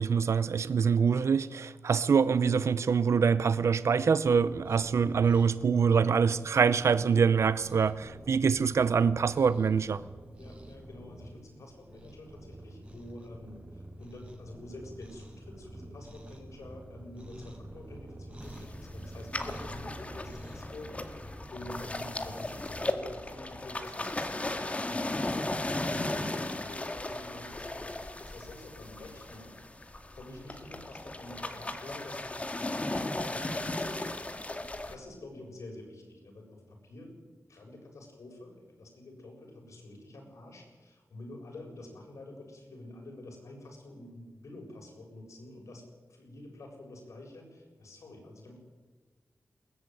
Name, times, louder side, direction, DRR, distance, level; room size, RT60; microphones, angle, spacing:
voice 1, 0.0-10.0, right 6 dB, 65° right, 14 dB, 0.7 m, -25 dB
Cat, 4.4-20.6, right 1 dB, 25° right, 5.7 m, -48 dB
voice 2, 10.4-21.2 21.5-37.2 37.5-48.6, left 1 dB, 75° left, 1 dB, 7.6 m, -48 dB
sound 1, 18.4-35.0, left 2 dB, 25° left, 2.0 m, -36 dB
21.5 x 18.5 x 9.3 m, 1.3 s
wide cardioid pair, 120°, 5 cm